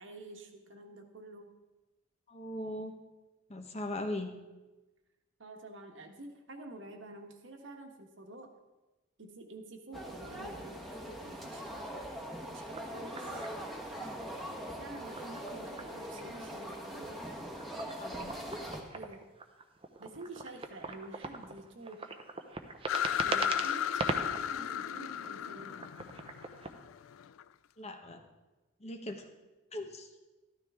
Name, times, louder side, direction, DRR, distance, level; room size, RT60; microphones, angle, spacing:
voice 1, 0.0-1.5 5.4-8.5 9.2-11.8 12.4-13.5 14.3-14.4 14.7-17.3 18.9-19.2 20.0-22.1 23.2-25.8, right 2 dB, 65° right, 3 dB, 1.4 m, -49 dB
voice 2, 2.3-2.9 3.5-4.3 18.0-18.3 27.8-28.2 28.8-29.3 29.7-30.1, left 1 dB, 30° left, 5 dB, 1.0 m, -39 dB
sound 1, 9.9-18.8, equal, ahead, 1.3 m, -42 dB
sound 2, 12.6-14.0 14.9-16.2 16.5-24.5 25.0-26.8, right 3 dB, 25° right, 0.7 m, -40 dB
sound 3, 22.9-27.4, left 9 dB, 80° left, 0.3 m, -34 dB
13.0 x 13.0 x 3.6 m, 1.1 s
head